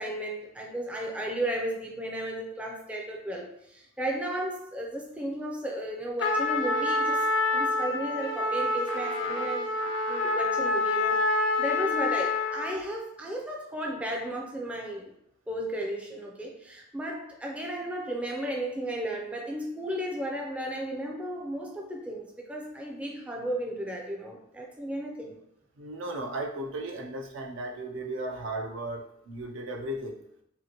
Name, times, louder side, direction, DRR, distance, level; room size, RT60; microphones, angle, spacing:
voice 1, 0.0-9.7 10.1-15.1 15.5-25.3, right 1 dB, 5° right, -1 dB, 0.4 m, -34 dB
Trumpet, 6.2-12.8, left 2 dB, 65° left, 0.3 m, -27 dB
voice 2, 25.8-30.2, right 1 dB, 70° right, 1 dB, 0.5 m, -35 dB
2.7 x 2.5 x 2.8 m, 0.75 s
head